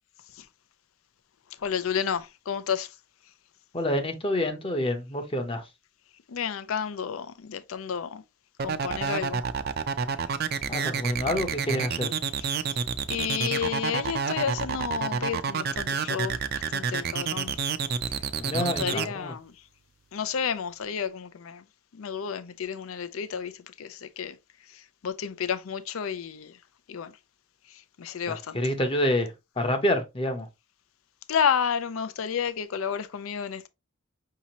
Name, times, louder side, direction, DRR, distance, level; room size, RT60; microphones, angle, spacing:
voice 1, 1.6-2.9 6.3-8.2 8.6-9.4 12.4-12.8 13.1-17.6 18.1-18.2 18.5-19.5 20.1-21.6 21.9-24.4 24.7-26.6 26.9-27.2 27.7-28.7 31.3-33.7, left 7 dB, 80° left, 0.5 m, -31 dB
voice 2, 3.7-5.6 10.7-12.1 18.4-19.3 28.3-30.5, left 1 dB, 25° left, 0.8 m, -28 dB
sound 1, 8.6-19.1, right 6 dB, 50° right, 0.4 m, -28 dB
5.8 x 2.8 x 2.9 m
head